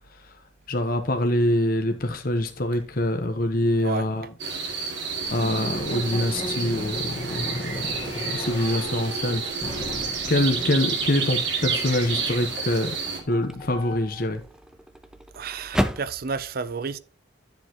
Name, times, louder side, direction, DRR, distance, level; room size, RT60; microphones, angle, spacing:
voice 1, 0.7-4.3 5.3-7.9 8.2-9.7 10.3-12.9 13.3-14.4, left 1 dB, 50° left, 1.1 m, -25 dB
sound 1, 4.4-13.2, right 5 dB, 70° right, 2.4 m, -30 dB
sound 2, 5.2-14.3, left 1 dB, 30° left, 1.6 m, -37 dB
sound 3, 7.3-7.6 8.2-16.2, equal, 5° right, 0.5 m, -36 dB
voice 2, 15.3-17.0, right 5 dB, 55° right, 0.5 m, -31 dB
11.5 x 7.1 x 3.0 m
head